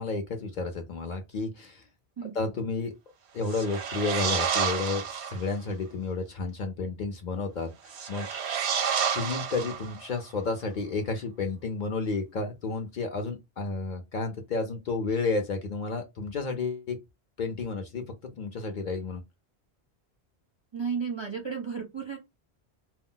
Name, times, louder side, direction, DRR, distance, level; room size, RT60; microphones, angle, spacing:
voice 1, 0.0-1.9 2.3-2.9 3.3-8.3 9.1-17.0 17.4-18.0 18.4-19.2, left 3 dB, 55° left, 0.6 m, -31 dB
sound 1, 3.4-5.5 7.9-10.2, right 7 dB, 90° right, 0.9 m, -30 dB
voice 2, 20.7-22.2, right 6 dB, 40° right, 0.4 m, -33 dB
2.2 x 2.0 x 3.7 m
omnidirectional pair, 1.1 m